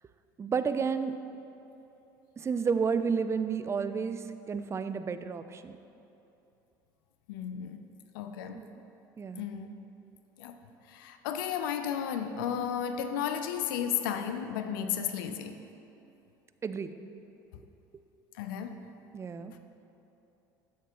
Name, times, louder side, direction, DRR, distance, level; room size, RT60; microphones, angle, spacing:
voice 1, 0.4-1.2 2.4-5.8 8.5-8.8 9.2-9.5 16.6-16.9 19.1-19.5, right 5 dB, 25° right, 11 dB, 0.4 m, -31 dB
voice 2, 7.3-7.9 8.1-8.6 9.4-9.7 10.4-10.6 10.9-15.6 18.3-18.8, left 8 dB, 80° left, 8 dB, 0.4 m, -33 dB
8.3 x 7.3 x 2.9 m, 2.9 s
hypercardioid pair, 75°, 11 cm